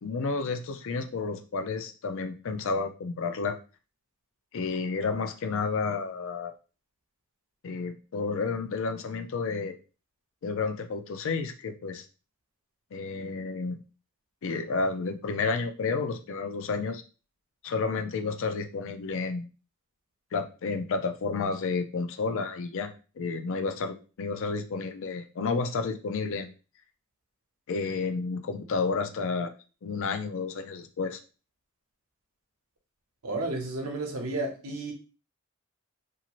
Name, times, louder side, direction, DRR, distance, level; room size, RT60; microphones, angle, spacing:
voice 1, 0.0-3.6 4.5-6.5 7.6-9.7 10.4-12.0 12.9-13.8 14.4-17.0 17.6-19.5 20.3-26.5 27.7-29.5 29.8-31.2, left 4 dB, 60° left, 0.4 m, -31 dB
voice 2, 33.2-34.9, right 2 dB, 75° right, 0.8 m, -32 dB
2.6 x 2.5 x 2.9 m
head